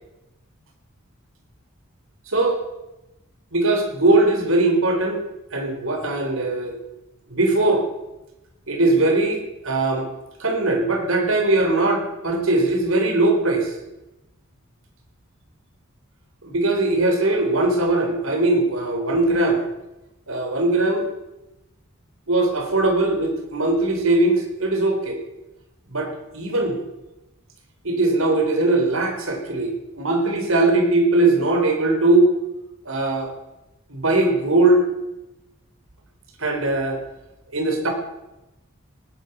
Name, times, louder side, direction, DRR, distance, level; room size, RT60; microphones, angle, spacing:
voice 1, 2.3-2.6 3.5-6.8 7.3-7.8 8.7-10.1 10.4-13.7 16.4-19.6 20.3-21.1 22.3-25.2 25.9-26.8 27.8-32.3 32.9-33.3 33.9-34.8 36.4-37.0 37.5-37.9, right 2 dB, 75° right, 3 dB, 4.1 m, -20 dB
18.0 x 10.5 x 7.0 m, 0.96 s
head